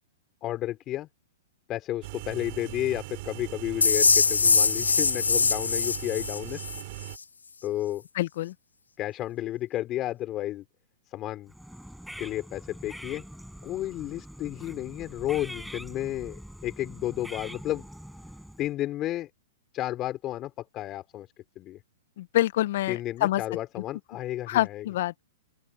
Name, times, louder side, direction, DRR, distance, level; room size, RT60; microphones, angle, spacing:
voice 1, 0.4-1.1 1.7-6.6 7.6-8.0 9.0-10.6 11.1-11.5 12.2-13.2 13.6-17.9 18.6-19.3 19.7-21.3 21.6-21.8 22.9-24.8, left 14 dB, 30° left, 4.0 m, -32 dB
sound 1, 2.0-7.2, right 22 dB, 50° right, 5.2 m, -40 dB
sound 2, 3.8-6.8, left 5 dB, 85° left, 2.1 m, -23 dB
voice 2, 8.1-8.5 22.2-23.4 24.5-25.2, left 14 dB, 55° left, 1.2 m, -26 dB
sound 3, 11.5-18.7, equal, ahead, 6.9 m, -44 dB
open air
hypercardioid pair, 115°, 0 cm